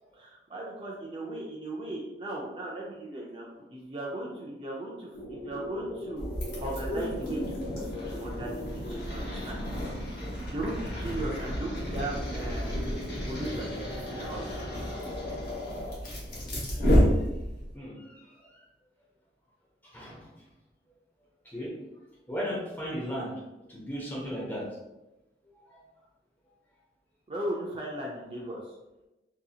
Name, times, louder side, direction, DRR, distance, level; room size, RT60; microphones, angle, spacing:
voice 1, 0.1-6.4 6.6-9.6 10.5-14.4 27.3-28.7, right 1 dB, 30° right, -3 dB, 0.4 m, -37 dB
sound 1, 5.1-15.9, left 1 dB, 75° left, 0.6 m, -41 dB
sound 2, 6.2-17.7, equal, 55° left, 1.0 m, -31 dB
voice 2, 16.7-17.3 17.7-18.6 19.8-20.3 21.4-21.8 22.3-23.3 23.7-24.7 25.7-25.8, equal, 10° left, -4 dB, 0.6 m, -36 dB
2.7 x 2.7 x 2.3 m, 0.98 s
head